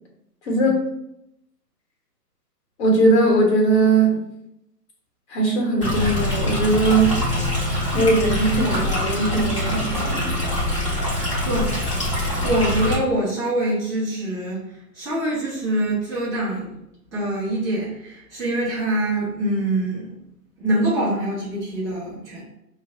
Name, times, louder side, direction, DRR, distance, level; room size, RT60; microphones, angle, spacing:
voice 1, 0.4-0.8 2.8-4.2 5.3-7.2 7.9-10.3, right 2 dB, 45° left, -1 dB, 1.2 m, -19 dB
Stream, 5.8-12.9, left 1 dB, 20° left, 0.4 m, -24 dB
voice 2, 11.4-11.8 12.2-16.7 17.1-20.1 20.6-22.4, right 1 dB, 5° right, -7 dB, 1.4 m, -24 dB
5.1 x 2.0 x 2.8 m, 0.82 s
figure-of-eight pair, 130°, 48 cm